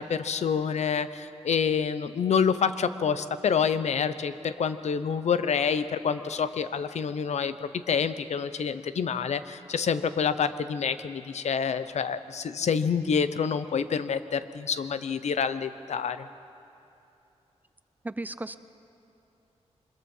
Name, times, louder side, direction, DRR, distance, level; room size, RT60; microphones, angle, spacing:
voice 1, 0.0-16.3, left 6 dB, 75° left, 12 dB, 0.7 m, -27 dB
voice 2, 18.0-18.6, right 2 dB, 15° right, 13 dB, 0.5 m, -34 dB
24.0 x 21.5 x 5.5 m, 2.8 s
wide cardioid pair, 165°, 12 cm